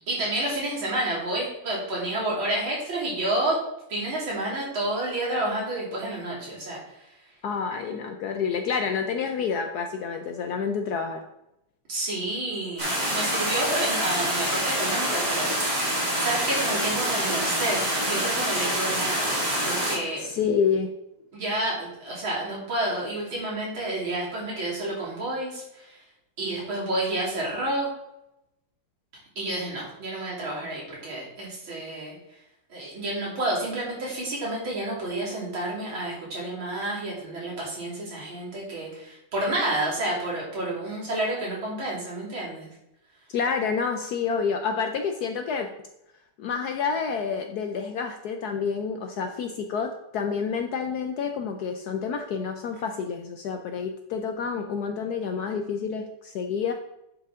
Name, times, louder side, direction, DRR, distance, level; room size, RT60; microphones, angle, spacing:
voice 1, 0.1-3.6 3.9-6.8 11.9-15.9 16.2-19.2 19.7-20.3 21.3-26.0 26.4-27.9 29.4-32.1 32.7-42.7, right 1 dB, 80° right, -6 dB, 3.8 m, -30 dB
voice 2, 7.4-11.2 20.2-20.9 43.3-45.7 46.4-56.7, left 6 dB, 70° left, 5 dB, 0.9 m, -28 dB
sound 1, 12.8-20.0, equal, 20° right, 2.0 m, -26 dB
9.9 x 4.9 x 3.6 m, 0.86 s
omnidirectional pair, 2.2 m